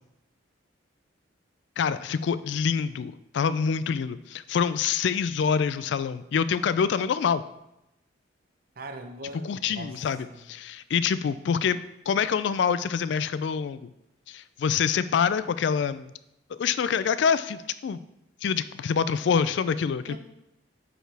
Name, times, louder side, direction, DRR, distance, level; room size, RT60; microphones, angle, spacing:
voice 1, 1.8-7.4 9.4-11.8 12.1-13.9 14.3-16.1 16.5-18.0 18.4-20.2, left 6 dB, 65° left, 14 dB, 0.3 m, -26 dB
voice 2, 8.8-10.4 20.1-20.2, right 1 dB, 50° right, 5 dB, 0.7 m, -41 dB
8.9 x 4.6 x 3.4 m, 0.86 s
head